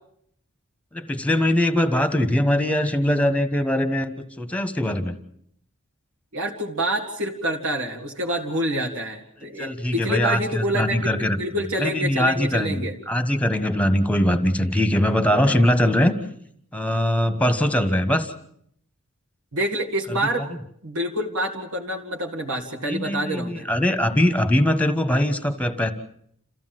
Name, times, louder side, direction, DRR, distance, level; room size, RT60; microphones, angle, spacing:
voice 1, 0.9-5.1 9.6-11.4 11.8-16.1 16.7-18.3 22.8-25.9, left 1 dB, 5° left, 10 dB, 1.4 m, -22 dB
voice 2, 6.3-12.9 19.5-20.5 20.8-23.7, right 1 dB, 85° right, 0 dB, 2.2 m, -27 dB
28.5 x 15.0 x 7.7 m, 0.70 s
head